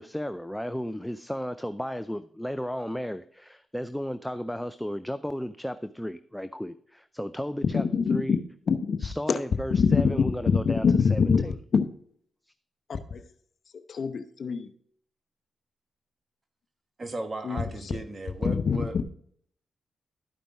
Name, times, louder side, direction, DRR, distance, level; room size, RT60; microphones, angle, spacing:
voice 1, 0.0-8.4 9.0-11.5, equal, 5° left, 12 dB, 0.4 m, -34 dB
voice 2, 7.7-8.4 8.7-9.0 9.7-10.0 10.5-11.4 11.7-11.9 12.9-13.2 13.9-14.7 17.4-17.6 18.4-18.8, left 6 dB, 60° left, 10 dB, 0.9 m, -24 dB
voice 3, 17.0-19.0, right 2 dB, 40° right, 7 dB, 1.2 m, -36 dB
13.0 x 5.1 x 3.5 m, 0.62 s
supercardioid pair, 50°, 0 cm